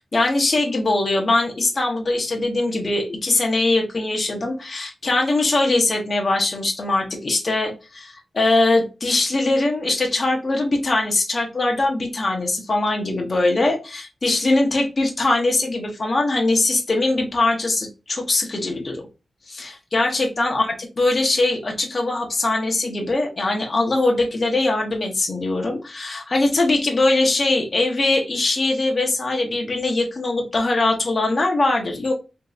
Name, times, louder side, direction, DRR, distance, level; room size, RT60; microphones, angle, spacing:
voice 1, 0.0-19.0 19.5-32.1, left 2 dB, 40° left, 1 dB, 0.6 m, -21 dB
3.0 x 2.6 x 2.3 m, 0.30 s
wide cardioid pair, 120°, 0 cm